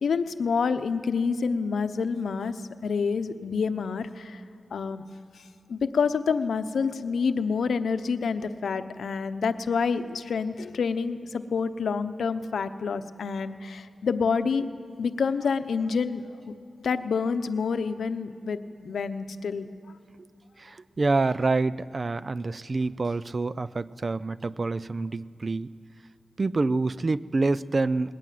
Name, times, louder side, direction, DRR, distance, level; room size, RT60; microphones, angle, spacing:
voice 1, 0.0-4.4 4.7-5.0 5.4-5.5 5.7-14.7 15.0-16.2 16.8-19.7, left 5 dB, 90° left, 10 dB, 0.8 m, -28 dB
voice 2, 20.6-25.7 26.4-28.1, right 3 dB, 40° right, 17 dB, 0.4 m, -27 dB
20.5 x 15.0 x 9.4 m, 2.6 s
wide cardioid pair, 125°, 0 cm